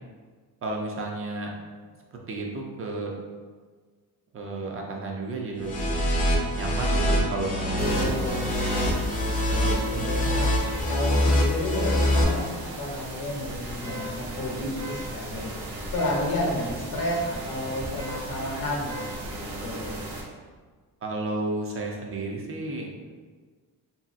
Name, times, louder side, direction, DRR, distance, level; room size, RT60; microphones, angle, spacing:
voice 1, 0.6-1.6 2.3-3.1 4.3-5.9 6.6-8.7 9.9-10.3 21.0-22.9, right 2 dB, 35° right, 1 dB, 0.4 m, -32 dB
sound 1, 5.6-12.2, left 1 dB, 20° left, 0.4 m, -24 dB
voice 2, 7.8-8.4 9.5-10.5 10.9-15.5 15.9-20.0, left 1 dB, 70° left, -1 dB, 0.8 m, -31 dB
sound 2, 7.8-20.2, right 1 dB, 80° right, 0.8 m, -37 dB
2.9 x 2.7 x 2.4 m, 1.5 s
cardioid pair, 140°, 38 cm